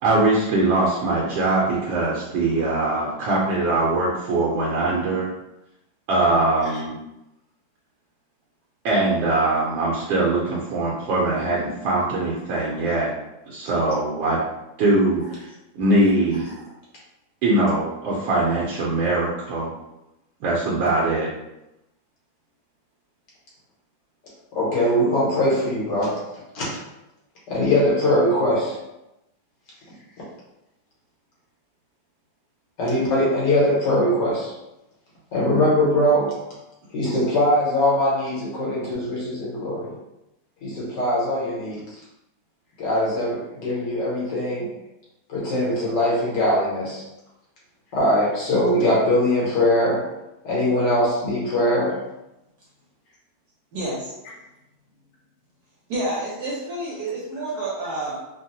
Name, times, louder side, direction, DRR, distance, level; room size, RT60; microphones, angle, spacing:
voice 1, 0.0-5.3 6.1-7.0 8.8-13.1 13.5-14.4 14.8-15.5 15.7-16.5 17.4-19.7 20.4-21.3, right 2 dB, 85° right, -5 dB, 1.4 m, -22 dB
voice 2, 24.5-26.1 26.5-26.7 27.5-28.8 32.8-34.5 35.3-36.3 36.9-39.9 40.6-41.8 42.8-44.7 45.3-47.0 47.9-50.0 50.4-52.0, left 1 dB, 70° left, -5 dB, 1.7 m, -21 dB
voice 3, 55.9-58.2, right 2 dB, 65° right, -5 dB, 1.1 m, -28 dB
3.8 x 2.0 x 2.7 m, 0.92 s
omnidirectional pair, 2.0 m